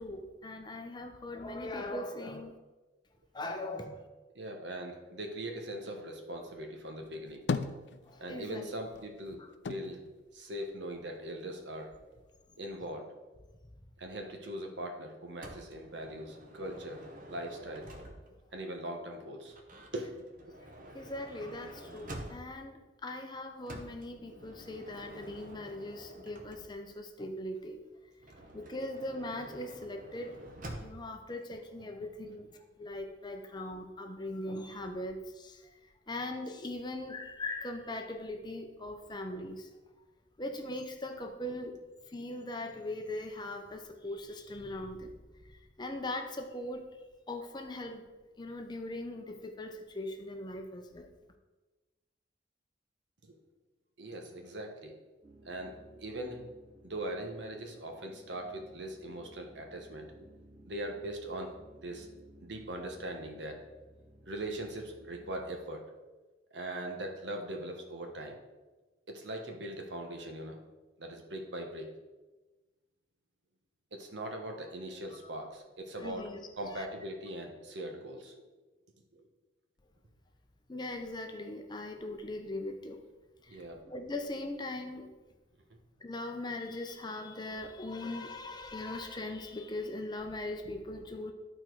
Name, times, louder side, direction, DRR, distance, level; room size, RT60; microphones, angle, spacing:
voice 1, 0.0-2.6 3.3-4.0 8.1-8.7 20.9-27.8 28.5-30.4 30.8-32.5 32.8-35.7 36.1-39.7 40.4-41.7 42.1-45.2 45.5-46.9 47.3-48.0 48.4-51.1 76.0-76.5 76.7-76.9 80.7-83.0 83.4-85.2 86.0-91.3, left 1 dB, 25° left, 4 dB, 0.7 m, -40 dB
voice 2, 4.3-7.4 8.2-9.4 9.7-10.0 10.3-11.9 12.6-13.1 14.0-17.0 17.3-17.9 18.5-19.5 19.9-20.1 20.7-20.9 28.4-28.5 32.2-32.4 53.2-53.4 54.0-54.9 55.4-56.4 56.8-60.1 60.7-61.5 61.8-62.1 62.4-63.6 64.3-65.8 66.5-68.4 69.1-70.6 71.0-71.9 73.9-76.3 76.6-78.4 79.1-79.3 83.5-83.8 85.7-85.8, right 1 dB, 75° right, 3 dB, 1.2 m, -41 dB
sound 1, 7.0-8.5 8.8-11.2 11.6-12.5, left 4 dB, 70° left, 0.4 m, -38 dB
Motor vehicle (road) / Sliding door, 15.4-18.5 19.5-22.7 23.7-27.0 28.2-31.2, right 1 dB, 45° right, 1.0 m, -49 dB
sound 2, 55.2-65.5, right 1 dB, 20° right, 1.4 m, -58 dB
11.5 x 4.5 x 4.6 m, 1.2 s
head